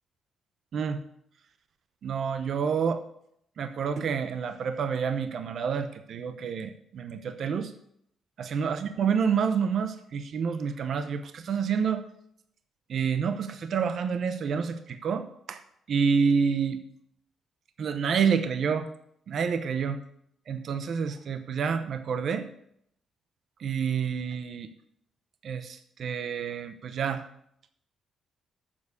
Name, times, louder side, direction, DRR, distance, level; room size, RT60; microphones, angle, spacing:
voice 1, 2.0-3.0 3.6-7.7 8.4-12.0 12.9-15.6 15.9-16.8 17.8-18.9 19.3-20.0 20.5-22.5 23.6-24.7 25.4-27.3, right 6 dB, 55° right, 10 dB, 0.7 m, -28 dB
7.2 x 7.0 x 8.2 m, 0.73 s
cardioid pair, 140°, 0 cm